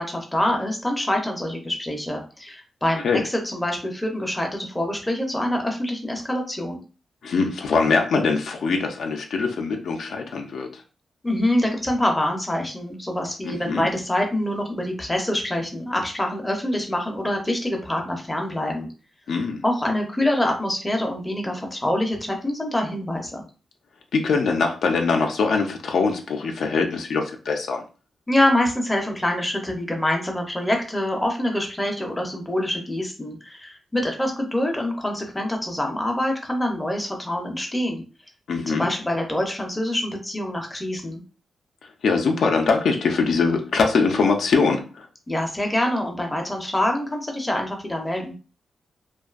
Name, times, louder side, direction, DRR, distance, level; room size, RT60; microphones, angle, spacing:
voice 1, 0.0-6.8 11.2-18.9 19.6-23.4 28.3-38.0 38.7-41.2 45.3-48.4, left 1 dB, 10° left, 2 dB, 0.5 m, -25 dB
voice 2, 7.2-10.8 13.4-13.9 19.3-19.6 24.1-27.8 38.5-38.9 42.0-45.1, left 4 dB, 75° left, 3 dB, 0.4 m, -22 dB
2.5 x 2.2 x 2.3 m, 0.35 s
wide cardioid pair, 155°, 0 cm